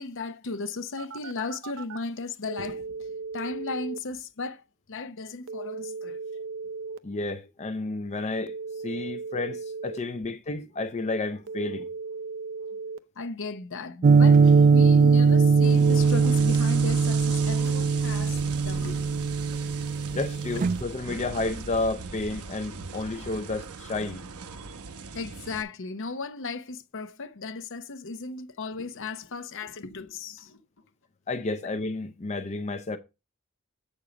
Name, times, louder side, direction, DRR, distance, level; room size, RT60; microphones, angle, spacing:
voice 1, 0.0-6.2 13.2-19.3 25.1-30.6, left 3 dB, 60° left, 0.8 m, -36 dB
Telephone, 1.0-2.0 2.5-4.0 5.5-7.0 8.5-10.0 11.5-13.0 14.5-16.0, right 4 dB, 65° right, 0.7 m, -36 dB
voice 2, 7.0-11.9 20.1-24.2 31.3-33.0, left 2 dB, 30° left, 0.5 m, -31 dB
sound 1, 14.0-20.8, right 5 dB, 35° right, 0.3 m, -20 dB
sound 2, 15.6-25.6, right 5 dB, 80° right, 0.9 m, -39 dB
8.4 x 6.4 x 3.9 m
head